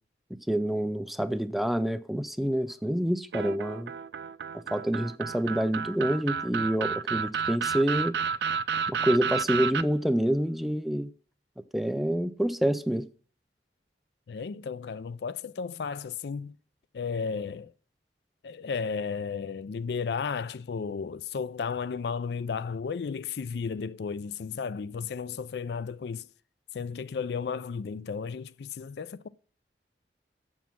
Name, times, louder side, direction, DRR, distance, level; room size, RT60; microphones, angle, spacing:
voice 1, 0.5-3.9 4.7-8.1 8.9-11.1 11.7-13.1, equal, ahead, 0.3 m, -27 dB
sound 1, 3.3-9.8, right 6 dB, 70° right, 0.4 m, -31 dB
voice 2, 14.3-16.5 16.9-17.7 18.4-26.3 26.7-29.3, left 5 dB, 70° left, 0.4 m, -34 dB
7.3 x 7.2 x 5.9 m
head